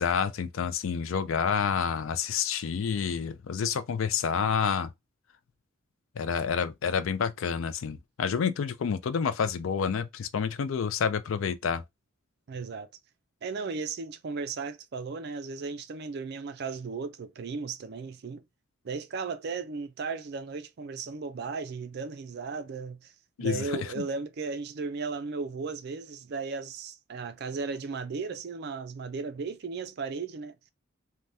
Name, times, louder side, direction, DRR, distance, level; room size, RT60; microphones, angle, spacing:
voice 1, 0.0-4.9 6.2-11.8 23.4-23.6 24.0-24.1, left 6 dB, 70° left, 0.4 m, -28 dB
voice 2, 12.5-12.9 13.4-18.4 18.8-23.1 23.4-30.5, right 4 dB, 55° right, 0.4 m, -35 dB
3.3 x 2.1 x 2.6 m
head